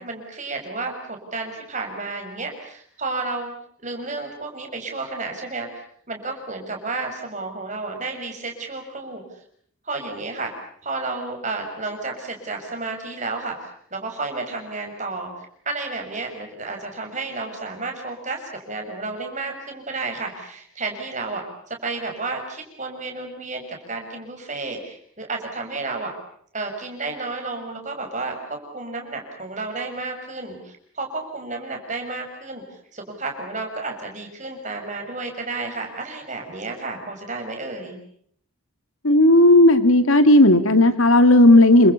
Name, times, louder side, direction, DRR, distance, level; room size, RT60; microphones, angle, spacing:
voice 1, 0.0-3.5 3.8-9.2 9.8-10.5 10.8-26.1 26.5-32.6 32.9-38.0, right 3 dB, 35° right, 3 dB, 6.6 m, -32 dB
voice 2, 39.0-41.9, left 1 dB, 70° left, 10 dB, 2.3 m, -13 dB
29.0 x 26.0 x 7.0 m, 0.64 s
head